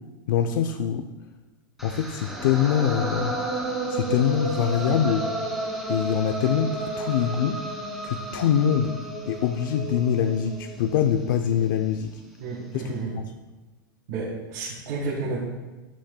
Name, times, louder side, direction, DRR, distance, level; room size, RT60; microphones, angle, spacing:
voice 1, 0.3-1.1 1.8-3.4 3.9-5.3 5.9-7.6 8.0-8.9 9.3-12.2 12.7-12.8 13.1-13.3, left 9 dB, 65° left, 5 dB, 0.6 m, -24 dB
sound 1, 1.8-11.9, right 2 dB, ahead, 1.9 m, -32 dB
voice 2, 12.4-13.1 14.1-15.4, right 3 dB, 60° right, -7 dB, 3.1 m, -31 dB
13.5 x 8.7 x 2.2 m, 1.2 s
supercardioid pair, 135°, 11 cm